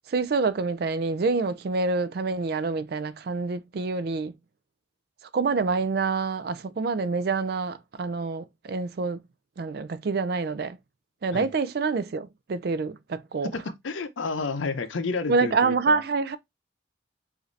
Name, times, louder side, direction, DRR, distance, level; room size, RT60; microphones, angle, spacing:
voice 1, 0.1-4.3 5.3-9.2 9.6-10.8 11.2-13.5 15.3-16.4, right 4 dB, 55° right, 0.4 m, -27 dB
voice 2, 13.8-16.0, left 4 dB, 80° left, 0.6 m, -30 dB
4.9 x 2.6 x 3.2 m
head